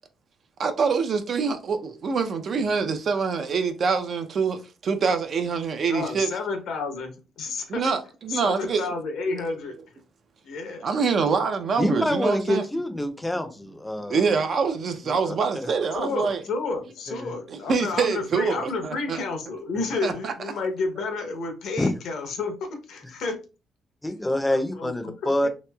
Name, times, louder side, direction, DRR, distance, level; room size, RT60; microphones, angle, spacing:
voice 1, 0.6-6.3 7.7-8.9 10.8-12.7 14.1-16.4 17.5-19.2 20.0-20.3, right 5 dB, 55° right, 0.5 m, -25 dB
voice 2, 5.9-7.8 8.3-9.7 10.4-10.8 11.3-11.4 15.9-23.4 24.5-25.3, left 3 dB, 75° left, 0.8 m, -31 dB
voice 3, 11.8-14.3 15.0-15.3 17.1-17.4 19.8-19.9 21.8-21.9 24.0-25.5, left 1 dB, 10° left, 0.5 m, -26 dB
2.9 x 2.8 x 2.2 m
cardioid pair, 90°, 0 cm